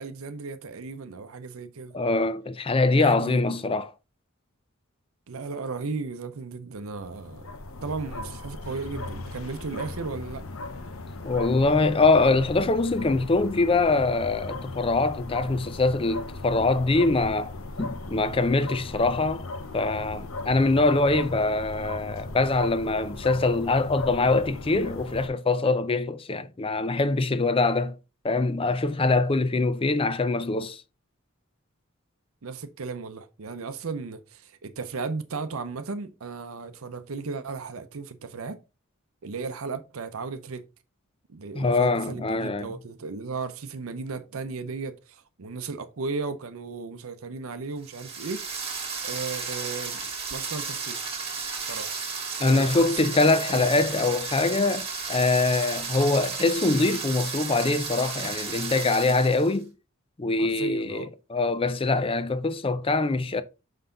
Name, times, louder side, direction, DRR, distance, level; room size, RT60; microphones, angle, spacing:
voice 1, 0.0-2.0 3.0-3.6 5.3-7.4 7.8-10.4 32.4-38.6 39.2-40.6 41.3-48.4 49.0-51.2 51.6-52.0 52.4-53.0 53.2-53.8 60.4-61.1, right 4 dB, 80° right, 0.7 m, -35 dB
voice 2, 1.9-3.9 11.2-17.5 17.8-19.5 19.7-28.0 28.2-30.8 41.5-42.7 52.4-59.7 60.2-63.4, left 3 dB, 25° left, 0.5 m, -23 dB
sound 1, 6.8-25.3, left 2 dB, 75° left, 0.9 m, -38 dB
sound 2, 47.8-59.6, right 5 dB, 25° right, 1.8 m, -33 dB
5.7 x 5.5 x 3.8 m
head